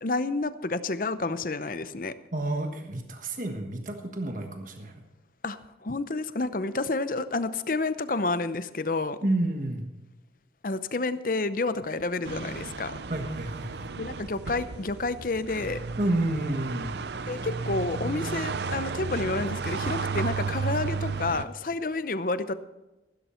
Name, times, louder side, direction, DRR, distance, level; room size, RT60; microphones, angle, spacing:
voice 1, 0.0-2.1 5.4-9.2 10.6-13.0 14.0-15.8 17.3-22.5, left 3 dB, 50° left, 13 dB, 0.7 m, -30 dB
voice 2, 2.3-4.9 9.2-9.9 13.1-13.9 16.0-17.0, right 1 dB, 45° right, 4 dB, 1.4 m, -30 dB
sound 1, 12.2-21.4, right 4 dB, 70° right, 0.6 m, -33 dB
15.5 x 12.5 x 4.4 m, 1.0 s
head